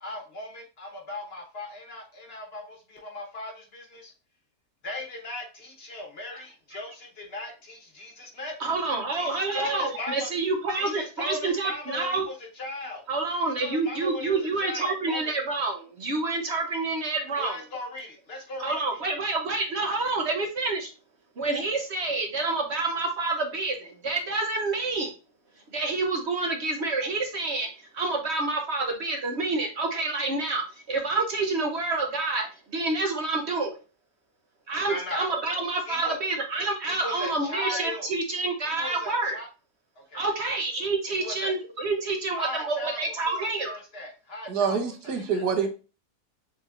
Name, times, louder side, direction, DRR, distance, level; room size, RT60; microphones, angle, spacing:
voice 1, 0.0-4.1 4.8-8.5 9.1-10.3 10.7-13.0 13.6-15.4 17.4-19.0 34.8-35.3 35.9-36.2 36.9-38.1 38.6-39.5 40.0-40.2 41.1-41.5 42.4-44.8 45.0-45.7, left 2 dB, 45° left, 1 dB, 1.1 m, -38 dB
voice 2, 8.6-12.3 13.1-17.6 18.6-20.9 21.4-25.1 25.7-33.8 34.7-39.4 40.1-43.7, right 3 dB, 55° right, 4 dB, 0.9 m, -28 dB
voice 3, 44.5-45.7, right 6 dB, 85° right, 5 dB, 1.4 m, -26 dB
7.0 x 3.2 x 2.4 m, 0.32 s
omnidirectional pair, 1.7 m